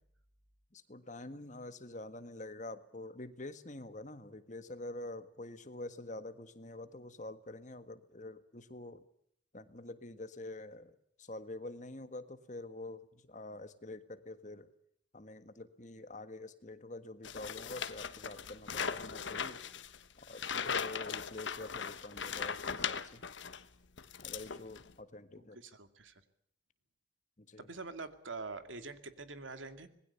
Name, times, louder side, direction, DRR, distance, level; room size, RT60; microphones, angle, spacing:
voice 1, 0.7-9.0 9.5-14.7 15.1-19.6 20.2-23.2 24.2-25.6 27.4-27.7, left 2 dB, 40° left, 11 dB, 1.5 m, -47 dB
sound 1, 17.2-23.6 24.0-24.9, left 6 dB, 75° left, 1.2 m, -39 dB
voice 2, 25.4-26.1 27.6-29.9, right 3 dB, 85° right, 9 dB, 2.4 m, -45 dB
25.5 x 20.5 x 7.0 m, 0.69 s
head